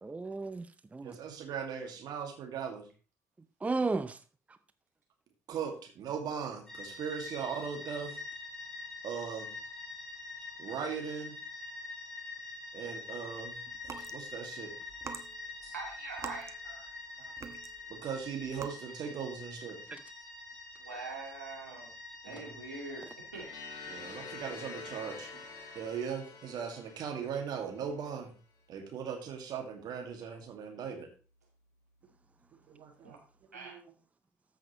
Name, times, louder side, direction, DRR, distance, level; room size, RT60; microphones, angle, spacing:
voice 1, 0.0-1.2 3.6-4.2 4.5-4.6 19.9-20.0, right 3 dB, 15° right, 0.5 m, -34 dB
voice 2, 1.0-2.8 5.5-8.2 9.0-9.5 10.6-11.4 12.7-13.5 14.0-14.7 17.2-17.3 17.9-19.8 22.3-22.5 23.9-25.3 25.8-28.3 28.7-31.1 32.7-33.2 33.5-33.8, right 7 dB, 50° right, 2.1 m, -39 dB
sound 1, 6.7-25.8, left 3 dB, 5° left, 5.0 m, -46 dB
sound 2, 13.7-14.2 14.9-17.0 17.4-18.0 18.4-18.7, right 6 dB, 35° right, 1.0 m, -44 dB
voice 3, 15.6-16.9 20.8-21.9 22.2-23.5 33.0-33.2 33.5-33.8, right 3 dB, 85° right, 2.3 m, -43 dB
sound 3, 23.4-28.2, left 4 dB, 50° left, 2.4 m, -48 dB
13.5 x 6.3 x 3.1 m
figure-of-eight pair, 50°, 9 cm